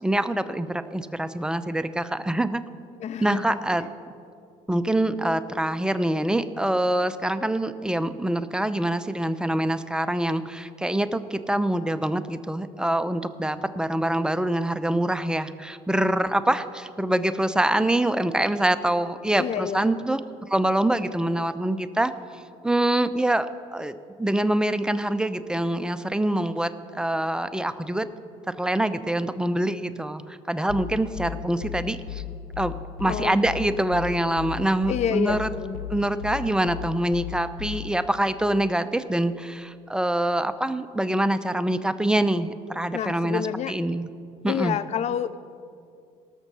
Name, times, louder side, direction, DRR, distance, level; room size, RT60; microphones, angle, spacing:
voice 1, 0.0-2.6 3.2-3.9 4.7-20.2 20.5-22.1 22.6-28.1 28.5-32.2 32.6-32.7 33.0-35.5 35.9-44.1 44.4-44.8, right 1 dB, 5° right, 11 dB, 0.6 m, -25 dB
voice 2, 3.0-3.6 19.4-19.8 33.1-33.4 34.9-35.8 42.9-43.7 44.5-45.4, left 8 dB, 50° left, 14 dB, 0.5 m, -28 dB
sound 1, 30.7-38.1, left 10 dB, 70° left, 0.8 m, -36 dB
18.0 x 6.5 x 6.2 m, 2.4 s
supercardioid pair, 85°, 15 cm